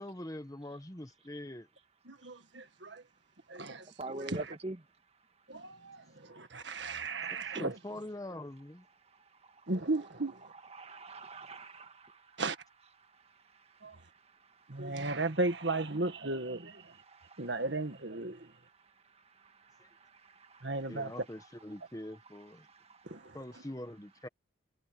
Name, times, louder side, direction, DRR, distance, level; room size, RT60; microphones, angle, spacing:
voice 1, 0.0-1.7 7.3-8.9 19.8-19.9 20.9-22.7 23.3-24.3, left 1 dB, 15° left, 1.2 m, -44 dB
voice 2, 2.1-3.0 3.5-3.8 4.1-4.4 5.5-7.8 9.7-10.4 12.4-12.6 13.8-14.0 14.7-16.9 17.4-18.5 20.6-21.1 23.1-23.4, right 2 dB, 60° right, 1.8 m, -35 dB
voice 3, 3.7-4.8 9.0-10.0 10.4-12.4 13.0-15.4 16.8-17.6 18.3-21.9 22.6-23.4, right 2 dB, 30° right, 1.7 m, -49 dB
head